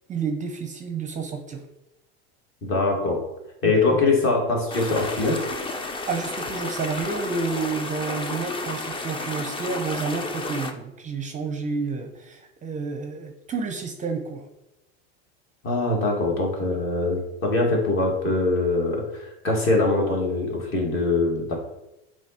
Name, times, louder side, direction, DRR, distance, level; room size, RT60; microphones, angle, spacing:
voice 1, 0.1-1.6 3.6-4.0 6.1-14.5, right 4 dB, 25° right, 5 dB, 0.6 m, -30 dB
voice 2, 2.6-3.2 3.6-5.4 15.6-21.5, left 3 dB, 40° left, 0 dB, 2.0 m, -23 dB
sound 1, 4.7-10.7, left 2 dB, 15° left, 0.5 m, -32 dB
7.2 x 3.1 x 4.3 m, 0.91 s
supercardioid pair, 125°, 31 cm